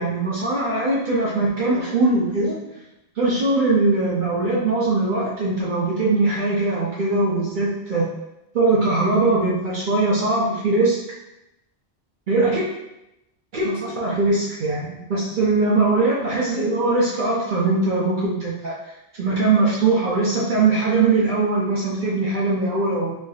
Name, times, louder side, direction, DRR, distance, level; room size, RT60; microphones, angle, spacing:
voice 1, 0.0-2.6 3.2-8.1 8.5-11.0 12.3-12.6 13.5-18.7 19.2-23.2, right 3 dB, 55° right, -5 dB, 0.7 m, -21 dB
3.2 x 2.6 x 2.3 m, 0.89 s
omnidirectional pair, 1.1 m